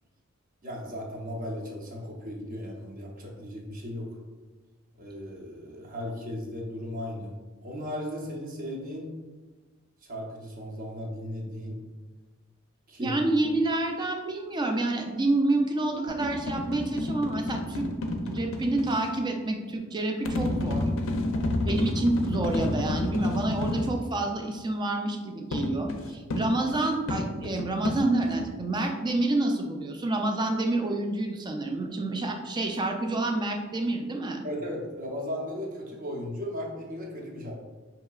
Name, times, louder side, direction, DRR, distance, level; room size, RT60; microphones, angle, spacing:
voice 1, 0.6-4.1 5.0-7.3 7.6-9.1 10.0-11.8 12.9-13.2 21.1-21.6 34.4-37.5, left 1 dB, 40° right, -2 dB, 0.8 m, -36 dB
voice 2, 13.0-17.9 18.2-20.9 21.7-34.4, right 2 dB, 20° right, 3 dB, 0.4 m, -28 dB
sound 1, 16.1-19.0 20.2-24.0 25.5-28.5, left 2 dB, 65° left, 0.4 m, -30 dB
5.5 x 2.8 x 2.4 m, 1.3 s
head